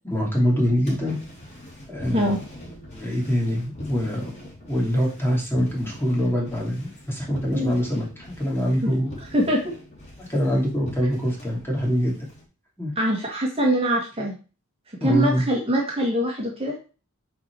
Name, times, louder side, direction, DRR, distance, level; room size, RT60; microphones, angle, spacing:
voice 1, 0.0-1.2 1.9-2.3 2.9-4.3 4.6-9.1 10.2-12.2 12.8-12.9 15.0-15.5, equal, 10° left, -3 dB, 2.7 m, -24 dB
sound 1, 0.8-12.4, left 1 dB, 30° left, 2.8 m, -43 dB
voice 2, 9.3-9.7 13.0-14.3 15.0-16.7, right 1 dB, 25° right, -2 dB, 1.8 m, -23 dB
8.4 x 4.4 x 4.7 m, 0.35 s
head